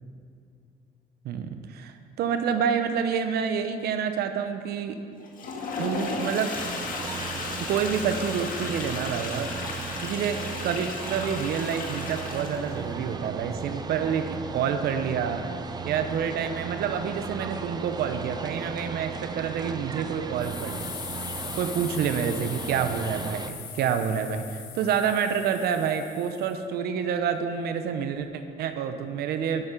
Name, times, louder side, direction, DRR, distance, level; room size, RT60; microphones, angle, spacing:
voice 1, 1.2-5.0 5.8-6.5 7.7-9.5 10.0-15.5 15.8-20.9 21.6-29.7, right 7 dB, 70° right, 8 dB, 0.7 m, -28 dB
Toilet flush, 5.2-12.9, left 3 dB, 55° left, 1.8 m, -35 dB
sound 1, 6.5-23.5, right 5 dB, 25° right, 0.6 m, -36 dB
sound 2, 20.4-26.6, left 9 dB, 85° left, 1.3 m, -40 dB
11.5 x 8.0 x 5.2 m, 2.5 s
cardioid pair, 110°, 17 cm